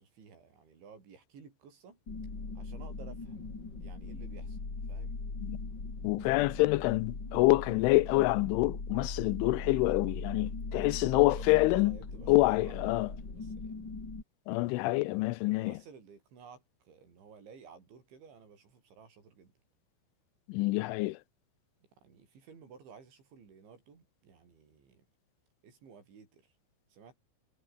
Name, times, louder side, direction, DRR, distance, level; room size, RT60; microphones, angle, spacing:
voice 1, 0.0-2.0 2.6-3.5 3.8-4.6 4.9-5.2 11.3-13.7 14.9-15.2 15.5-19.5 22.0-25.0 25.6-26.5 26.9-27.2, right 6 dB, 65° right, 8.7 m, -54 dB
sound 1, 2.1-14.2, left 3 dB, 25° left, 4.4 m, -40 dB
voice 2, 6.0-12.0 12.3-13.1 14.5-15.8 20.5-21.2, left 21 dB, 80° left, 3.1 m, -27 dB
omnidirectional pair, 5.7 m